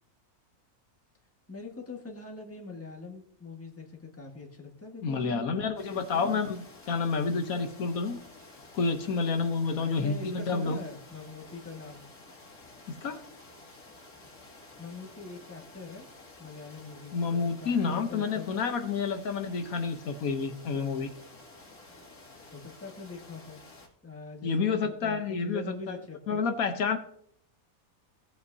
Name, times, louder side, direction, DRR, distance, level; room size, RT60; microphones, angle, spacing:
voice 1, 1.5-6.4 9.8-12.1 14.8-16.1 16.4-18.5 22.5-23.6 24.0-26.5, left 3 dB, 10° left, 0 dB, 1.4 m, -43 dB
voice 2, 5.0-8.2 8.7-10.8 12.9-13.2 17.1-21.1 24.4-26.0 26.3-27.0, left 5 dB, 70° left, 6 dB, 1.3 m, -29 dB
sound 1, 5.8-23.9, left 2 dB, 90° left, 2.6 m, -52 dB
17.0 x 8.1 x 2.7 m, 0.69 s
omnidirectional pair, 1.5 m